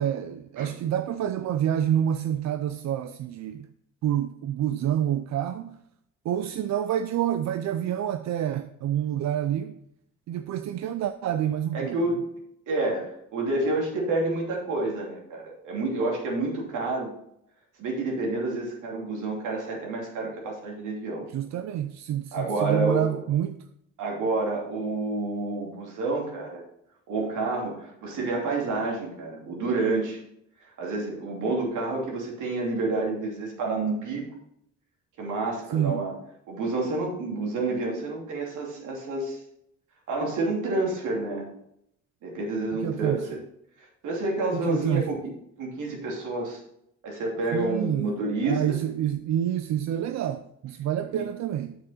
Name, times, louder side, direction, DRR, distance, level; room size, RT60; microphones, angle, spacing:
voice 1, 0.0-3.7 4.0-5.8 6.2-9.7 10.3-12.0 21.3-23.6 35.7-36.0 42.8-43.2 44.5-45.1 47.5-48.1 48.4-51.8, right 10 dB, 65° right, 0.5 m, -28 dB
voice 2, 11.7-12.3 12.7-17.1 17.8-21.2 22.3-23.1 24.0-26.6 27.1-30.2 30.8-34.2 35.2-36.1 36.5-39.4 40.1-41.5 42.2-43.4 43.8-45.2 45.6-46.6 47.0-48.8 51.2-51.3, right 2 dB, 80° right, 2.8 m, -29 dB
7.5 x 6.9 x 4.2 m
cardioid pair, 90°, 30 cm